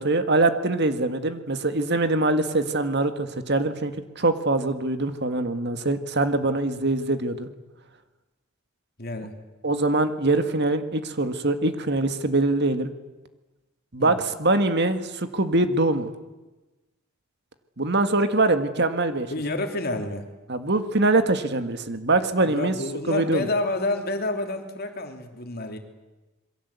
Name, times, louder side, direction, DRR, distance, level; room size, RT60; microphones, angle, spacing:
voice 1, 0.0-7.5 9.6-12.9 13.9-16.1 17.8-19.3 20.5-22.7 23.1-23.5, right 2 dB, 50° right, 9 dB, 1.9 m, -23 dB
voice 2, 9.0-9.3 14.0-14.1 19.3-20.3 22.5-25.8, left 2 dB, 45° left, 5 dB, 3.0 m, -29 dB
27.5 x 22.5 x 8.3 m, 1.1 s
head